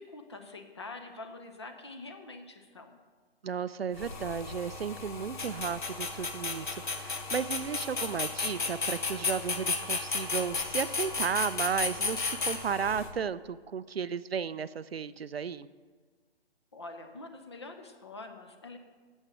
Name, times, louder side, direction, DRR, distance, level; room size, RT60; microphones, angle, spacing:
voice 1, 0.0-3.0 16.7-18.8, left 2 dB, 25° left, 5 dB, 0.6 m, -45 dB
voice 2, 3.4-15.7, right 6 dB, 70° right, 15 dB, 0.4 m, -34 dB
sound 1, 3.9-13.1, left 4 dB, 50° left, 1.1 m, -34 dB
8.7 x 7.3 x 6.1 m, 1.5 s
figure-of-eight pair, 145°, 32 cm